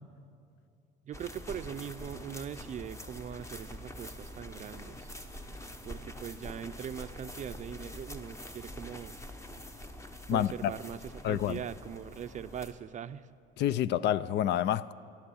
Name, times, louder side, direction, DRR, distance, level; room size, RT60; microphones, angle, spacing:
voice 1, 1.0-5.1 5.8-9.2 10.3-11.0 11.2-13.3, right 9 dB, 35° right, 12 dB, 0.5 m, -41 dB
sound 1, 1.1-12.7, left 1 dB, 15° left, 0.9 m, -45 dB
voice 2, 10.3-10.7 11.2-11.6 13.6-14.9, left 11 dB, 55° left, 19 dB, 0.4 m, -28 dB
14.0 x 11.5 x 7.1 m, 2.5 s
cardioid pair, 110°, 21 cm